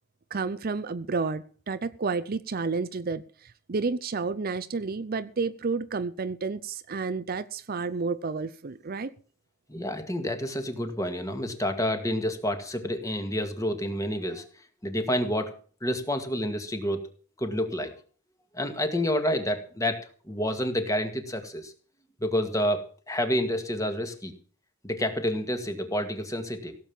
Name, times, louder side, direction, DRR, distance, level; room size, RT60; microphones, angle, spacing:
voice 1, 0.3-9.1, right 4 dB, 45° right, 0.6 m, -31 dB
voice 2, 9.7-14.5 14.8-15.5 15.8-17.0 17.4-17.9 18.5-20.0 20.3-21.7 22.2-24.3 24.8-26.7, equal, 15° left, 1.9 m, -29 dB
17.0 x 7.7 x 7.0 m
head